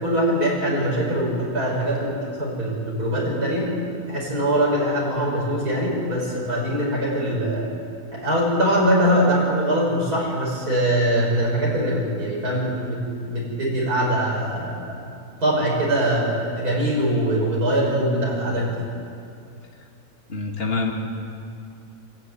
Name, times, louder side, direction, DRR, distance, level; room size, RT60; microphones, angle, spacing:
voice 1, 0.0-3.7 4.1-7.7 8.1-15.0 15.4-18.9, right 1 dB, 85° right, -3 dB, 6.1 m, -22 dB
voice 2, 20.3-20.9, left 4 dB, 40° left, 1 dB, 2.3 m, -25 dB
25.5 x 12.0 x 9.6 m, 2.4 s
omnidirectional pair, 1.6 m